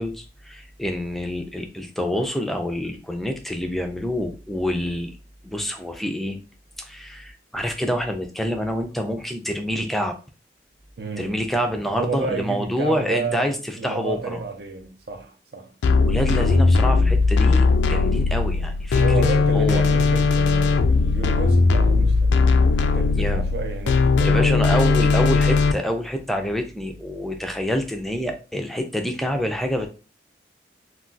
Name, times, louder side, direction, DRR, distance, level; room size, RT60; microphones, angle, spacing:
voice 1, 0.0-5.1 5.4-6.4 6.8-10.2 11.2-14.4 16.0-19.0 19.5-19.8 23.1-23.4 24.2-29.9, equal, ahead, 0.3 m, -27 dB
voice 2, 11.0-11.4 11.9-15.7 18.9-24.8 25.1-25.3, right 4 dB, 65° right, 0.5 m, -31 dB
sound 1, 15.8-25.7, left 4 dB, 85° left, 0.3 m, -18 dB
2.3 x 2.3 x 3.8 m
head